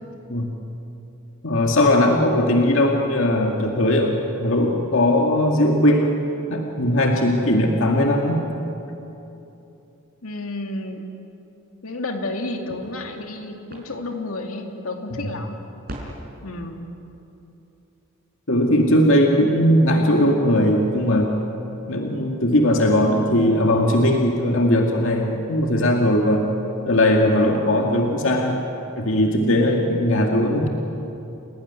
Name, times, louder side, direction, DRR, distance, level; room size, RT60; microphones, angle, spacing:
voice 1, 1.4-6.1 6.5-8.4 15.2-15.3 18.5-21.4 21.9-26.5 26.9-28.6 29.0-30.7, left 1 dB, 65° left, 1 dB, 2.2 m, -19 dB
voice 2, 10.2-11.1 11.8-15.6 16.4-16.9, left 2 dB, 80° left, 3 dB, 2.7 m, -31 dB
sound 1, 12.7-14.8 15.3-15.4 15.7-16.0, right 1 dB, 45° right, 5.5 m, -41 dB
30.0 x 18.5 x 9.7 m, 2.9 s
head